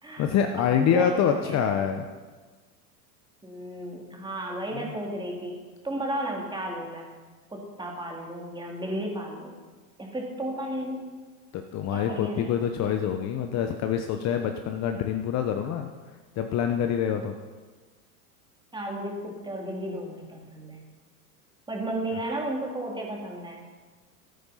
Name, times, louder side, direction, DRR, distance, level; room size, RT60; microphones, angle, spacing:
voice 1, 0.2-2.1 4.7-4.8 11.5-15.9 16.4-17.3, left 8 dB, 35° left, 5 dB, 1.0 m, -26 dB
voice 2, 0.7-1.7 3.4-5.6 5.8-7.0 7.5-9.6 10.0-11.1 11.9-12.6 18.7-20.8 21.7-23.6, right 1 dB, 10° right, 0 dB, 2.8 m, -33 dB
13.0 x 9.1 x 5.7 m, 1.4 s
hypercardioid pair, 115°, 45 cm